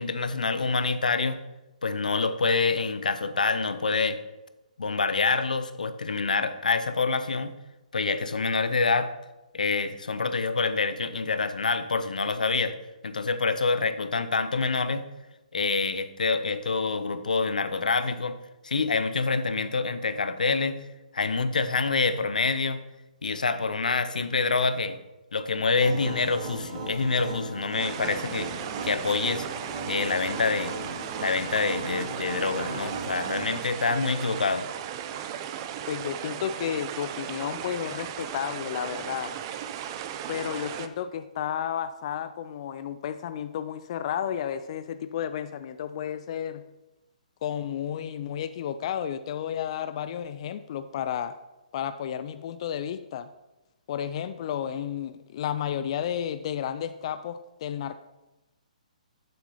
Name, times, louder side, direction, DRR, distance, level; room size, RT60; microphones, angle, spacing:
voice 1, 0.0-1.4 1.8-4.2 4.8-7.5 7.9-9.1 9.5-12.8 13.0-15.0 15.5-18.4 18.6-20.8 21.1-22.8 23.2-25.0 25.3-28.5 28.8-29.5 29.9-30.7 31.2-34.7, left 4 dB, 85° left, 11 dB, 0.7 m, -26 dB
sound 1, 25.8-33.6, right 3 dB, 55° right, 2.4 m, -37 dB
sound 2, 27.8-40.9, right 9 dB, 35° right, 0.6 m, -36 dB
voice 2, 35.9-39.4 40.3-46.6 47.4-51.4 51.7-53.3 53.9-57.9, left 9 dB, 45° left, 11 dB, 0.4 m, -32 dB
7.3 x 6.1 x 5.5 m, 1.0 s
hypercardioid pair, 140°, 4 cm